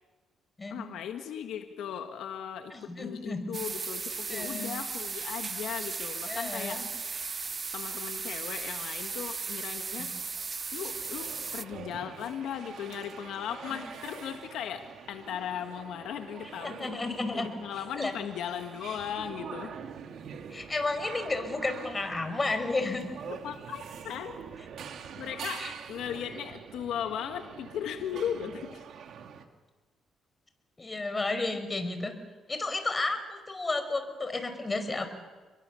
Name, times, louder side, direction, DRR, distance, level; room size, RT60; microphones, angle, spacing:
voice 1, 0.7-6.9 7.7-10.1 10.7-16.9 17.3-19.7 23.3-24.4 25.2-28.8, left 9 dB, 80° left, 6 dB, 1.6 m, -37 dB
voice 2, 2.7-3.4 4.3-4.7 6.3-6.9 10.0-10.1 16.6-17.5 18.0-18.1 20.5-23.2 25.6-25.7 30.8-32.1 32.5-35.1, left 3 dB, 25° left, 8 dB, 4.9 m, -32 dB
sound 1, 3.5-11.6, right 5 dB, 35° right, 0.9 m, -36 dB
sound 2, 10.9-29.4, right 7 dB, 70° right, 2.4 m, -45 dB
29.5 x 22.5 x 7.1 m, 1.3 s
cardioid pair, 90°, 0 cm